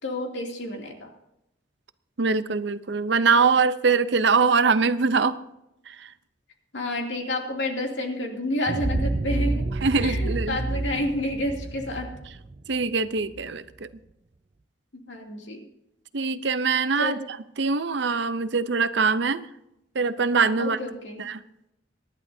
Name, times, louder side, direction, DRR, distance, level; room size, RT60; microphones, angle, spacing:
voice 1, 0.0-1.1 6.7-9.7 10.0-12.1 15.1-15.6 17.0-17.2 20.6-21.2, left 1 dB, 70° left, 1 dB, 2.7 m, -29 dB
voice 2, 2.2-5.4 5.9-6.1 9.8-10.6 12.7-13.9 16.1-17.2 17.6-19.5 19.9-20.8 21.2-21.4, right 4 dB, 65° right, 13 dB, 0.7 m, -23 dB
sound 1, 8.7-13.4, right 2 dB, 30° right, 0.4 m, -29 dB
24.0 x 11.0 x 2.7 m, 0.83 s
head